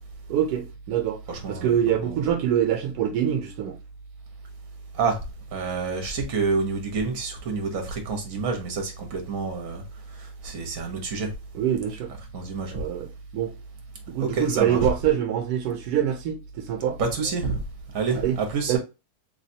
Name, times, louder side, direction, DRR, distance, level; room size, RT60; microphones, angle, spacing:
voice 1, 0.3-1.2 1.5-3.8 11.5-12.1 12.7-13.1 13.3-13.5 14.1-17.0 18.2-18.4 18.7-18.8, right 10 dB, 90° right, 1.2 m, -25 dB
voice 2, 1.3-2.2 4.9-5.2 5.5-9.8 10.1-11.3 12.3-12.7 14.2-14.8 17.0-17.6 17.9-18.8, right 4 dB, 65° right, 1.4 m, -28 dB
3.3 x 3.2 x 2.7 m
omnidirectional pair, 1.6 m